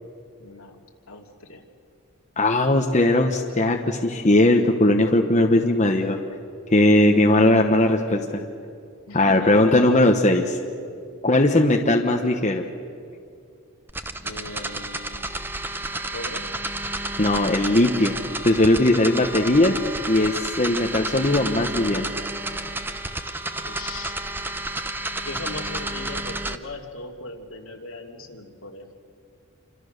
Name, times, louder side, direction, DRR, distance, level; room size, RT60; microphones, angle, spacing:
voice 1, 0.4-0.8 1.1-1.6 9.1-9.7 14.2-15.6 16.1-16.5 23.6-24.1 25.2-28.9, left 2 dB, 70° left, 1 dB, 2.8 m, -39 dB
voice 2, 2.4-6.2 6.7-8.4 9.1-10.6 11.2-12.6 17.2-18.1 18.4-19.7 20.1-22.1, left 1 dB, 30° left, 2 dB, 1.2 m, -19 dB
sound 1, 13.9-26.6, right 2 dB, 10° right, 0.8 m, -31 dB
28.5 x 25.0 x 6.7 m, 2.4 s
head